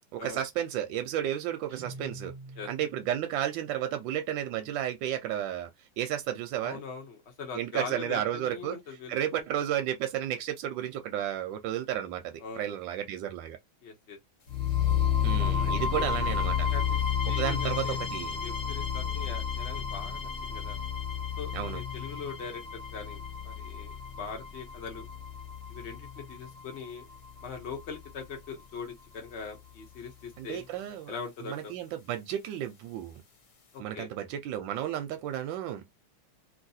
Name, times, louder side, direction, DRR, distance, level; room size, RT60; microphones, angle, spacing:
voice 1, 0.1-2.3 2.7-5.7 6.0-6.8 7.5-8.8 9.1-13.6 15.2-16.7 17.4-18.4 21.5-21.8 30.4-31.1 31.5-33.2 33.8-35.8, right 11 dB, 75° right, 1.1 m, -32 dB
Guitar, 1.7-3.4, right 2 dB, 35° right, 0.7 m, -45 dB
voice 2, 6.6-9.4 12.4-12.7 13.8-14.2 15.4-16.2 16.7-17.0 17.3-18.0 18.4-20.8 21.4-22.6 22.9-25.1 25.7-27.0 27.4-30.7 31.1-31.7 33.7-34.1, left 5 dB, 80° left, 0.6 m, -41 dB
sound 1, 14.5-28.5, left 8 dB, 50° left, 1.0 m, -31 dB
3.1 x 2.8 x 2.7 m
omnidirectional pair, 2.3 m